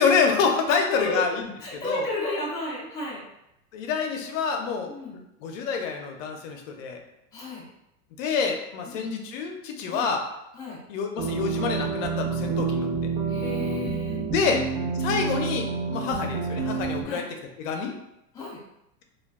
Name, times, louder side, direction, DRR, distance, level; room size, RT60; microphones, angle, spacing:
voice 1, 0.0-1.5 1.7-2.0 3.7-4.9 5.4-7.0 8.2-10.2 10.9-12.9 14.3-14.6 15.0-17.3 17.6-18.0, left 5 dB, 55° left, 3 dB, 0.5 m, -27 dB
voice 2, 0.7-1.2 1.6-3.2 4.9-5.2 7.3-7.6 8.8-9.1 9.9-10.1 10.5-10.8 13.3-14.6 15.1-15.3 16.0-16.3 17.0-17.3 18.3-18.6, left 2 dB, 10° left, -7 dB, 0.3 m, -33 dB
sound 1, 11.2-17.0, right 4 dB, 75° right, 0.8 m, -28 dB
2.3 x 2.2 x 3.3 m, 0.84 s
supercardioid pair, 130°, 47 cm